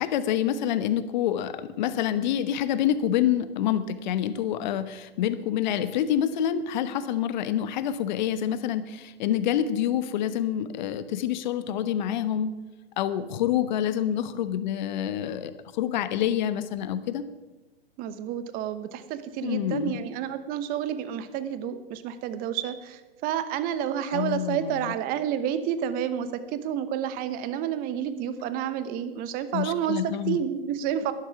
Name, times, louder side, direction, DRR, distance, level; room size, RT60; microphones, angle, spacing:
voice 1, 0.0-12.5 13.0-17.2 19.4-20.0 24.1-25.0 29.5-30.4, left 10 dB, 50° left, 12 dB, 1.1 m, -27 dB
voice 2, 18.0-31.1, right 9 dB, 30° right, 12 dB, 1.0 m, -30 dB
12.5 x 11.0 x 5.8 m, 1.1 s
hypercardioid pair, 120°, 30 cm